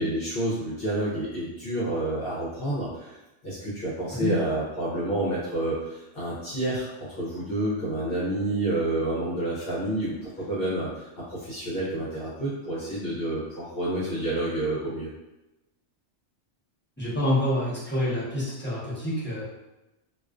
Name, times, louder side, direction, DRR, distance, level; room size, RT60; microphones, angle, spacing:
voice 1, 0.0-3.2 3.4-6.9 7.2-15.1, right 1 dB, 60° left, -8 dB, 0.8 m, -29 dB
voice 2, 17.0-19.4, left 1 dB, 10° left, -10 dB, 0.7 m, -27 dB
2.3 x 2.3 x 2.3 m, 1.0 s
omnidirectional pair, 1.2 m